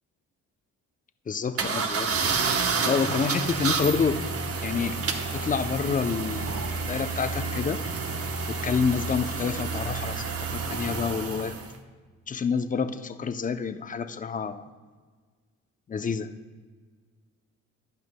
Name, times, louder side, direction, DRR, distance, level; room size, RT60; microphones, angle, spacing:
voice 1, 1.3-2.1 2.8-4.2 4.6-5.0 5.3-6.6 6.9-7.8 8.5-11.5 12.3-14.6 15.9-16.3, left 6 dB, 25° left, 9 dB, 0.6 m, -28 dB
sound 1, 1.6-11.7, right 4 dB, 50° right, 1.0 m, -29 dB
15.0 x 10.5 x 2.2 m, 1.5 s
cardioid pair, 90°, 30 cm